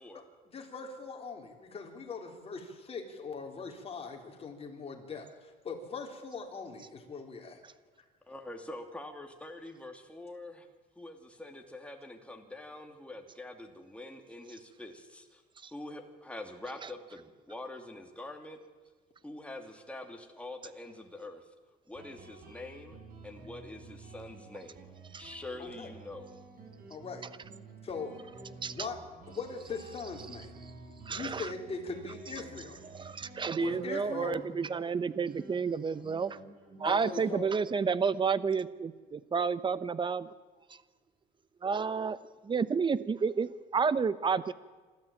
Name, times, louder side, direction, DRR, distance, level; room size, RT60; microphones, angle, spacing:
voice 1, 0.1-7.6 25.6-25.9 26.9-27.2 27.8-28.1 28.7-29.0 29.3-30.5 31.1-32.8 33.5-34.4 36.8-37.5, left 4 dB, 35° left, 2 dB, 4.0 m, -41 dB
voice 2, 8.2-10.7 11.0-15.4 15.7-18.6 19.2-21.4 21.9-23.0 23.2-26.3, left 2 dB, 5° left, 3 dB, 2.8 m, -45 dB
Guitar, 21.9-39.1, right 3 dB, 55° right, 7.5 m, -51 dB
voice 3, 31.1-31.5 32.9-36.4 36.8-40.3 41.6-42.2 42.4-44.5, right 5 dB, 30° right, 16 dB, 1.0 m, -30 dB
27.0 x 13.0 x 8.8 m, 1.3 s
cardioid pair, 110°, 17 cm